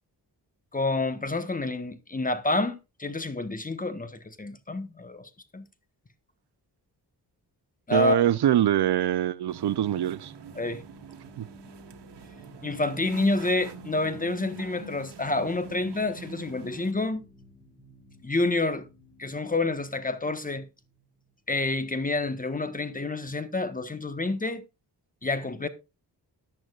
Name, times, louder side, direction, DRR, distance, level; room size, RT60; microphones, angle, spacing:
voice 1, 0.7-5.7 7.9-8.2 10.5-10.8 12.6-17.2 18.2-18.8 19.2-20.7 21.5-24.6 25.2-25.7, left 2 dB, 20° left, 1.2 m, -28 dB
voice 2, 7.9-10.3 11.4-11.5, right 11 dB, 70° right, 0.7 m, -24 dB
sound 1, 9.1-21.9, left 1 dB, 5° right, 7.0 m, -55 dB
sound 2, 9.5-16.9, right 4 dB, 85° right, 1.5 m, -45 dB
14.5 x 10.5 x 2.4 m
wide cardioid pair, 95°, 41 cm